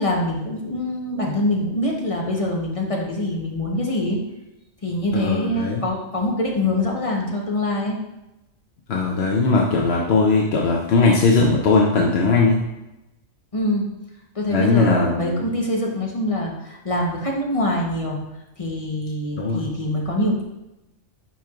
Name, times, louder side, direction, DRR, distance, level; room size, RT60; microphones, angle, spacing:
voice 1, 0.0-4.2 4.8-8.0 13.5-13.9 14.3-18.2 18.6-20.4, left 1 dB, 30° left, -1 dB, 0.9 m, -24 dB
voice 2, 5.1-5.8 8.9-12.6 14.5-15.4 19.4-19.6, left 3 dB, 55° left, -1 dB, 0.9 m, -19 dB
10.0 x 4.5 x 2.4 m, 0.95 s
omnidirectional pair, 1.4 m